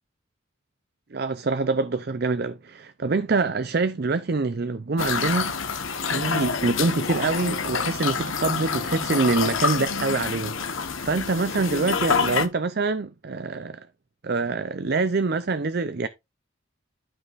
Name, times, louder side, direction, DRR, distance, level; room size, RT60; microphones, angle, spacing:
voice 1, 1.1-5.6 6.0-13.9 14.2-16.1, right 3 dB, 50° right, 0.5 m, -25 dB
sound 1, 5.0-12.5, left 5 dB, 80° left, 1.2 m, -27 dB
12.5 x 5.6 x 2.5 m
head